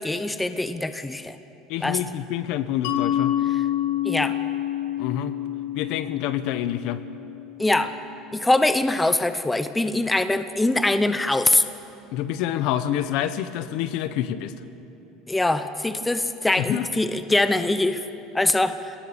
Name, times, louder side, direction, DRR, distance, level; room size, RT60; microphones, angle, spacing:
voice 1, 0.0-1.4 1.8-2.0 4.0-4.4 7.6-7.9 8.3-11.6 15.3-18.0 18.3-18.8, left 2 dB, 10° left, 10 dB, 0.8 m, -23 dB
voice 2, 1.7-3.4 5.0-5.3 5.7-7.0 12.1-14.5 16.6-16.9, left 11 dB, 65° left, 12 dB, 1.2 m, -27 dB
Mallet percussion, 2.8-8.2, left 12 dB, 80° left, 2.0 m, -28 dB
27.5 x 18.0 x 7.1 m, 3.0 s
cardioid pair, 140°, 0 cm